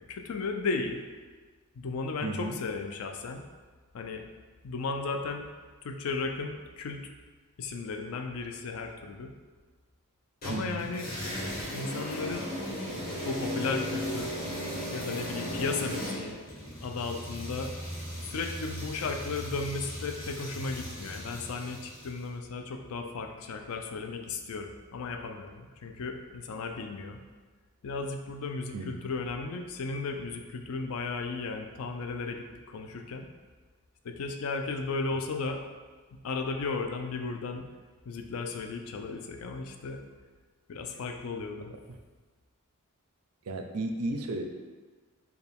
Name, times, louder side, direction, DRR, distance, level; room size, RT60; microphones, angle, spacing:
voice 1, 0.1-1.0 1.8-3.4 3.9-4.2 4.6-5.5 5.8-7.1 7.6-9.3 10.4-11.1 11.7-12.5 13.2-14.3 14.9-16.4 16.8-17.7 18.3-27.2 27.8-33.3 34.0-35.6 36.1-37.7 38.1-40.0 40.7-41.7, left 4 dB, 70° left, 4 dB, 0.4 m, -35 dB
voice 2, 2.2-2.6 10.5-10.9 28.7-28.9 43.5-44.4, right 2 dB, 85° right, 5 dB, 0.4 m, -33 dB
sound 1, 10.4-22.2, equal, 45° left, 1.3 m, -37 dB
4.5 x 2.3 x 3.4 m, 1.4 s
head